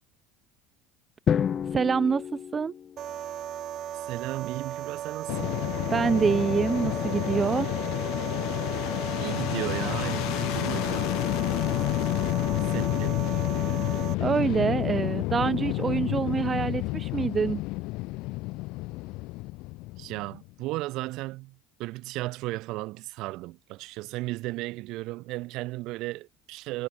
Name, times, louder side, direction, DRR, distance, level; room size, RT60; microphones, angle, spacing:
Drum, 1.3-3.4, left 8 dB, 30° left, 0.5 m, -29 dB
voice 1, 1.7-2.7 5.9-7.7 14.2-17.6, right 5 dB, 20° right, 0.6 m, -26 dB
sound 1, 3.0-14.1, right 10 dB, 35° right, 2.5 m, -36 dB
voice 2, 3.9-5.6 9.2-11.2 12.7-13.2 20.0-26.9, right 20 dB, 55° right, 2.0 m, -35 dB
Fixed-wing aircraft airplane, 5.3-20.5, left 22 dB, 60° left, 1.8 m, -29 dB
cardioid pair, 150°, 0 cm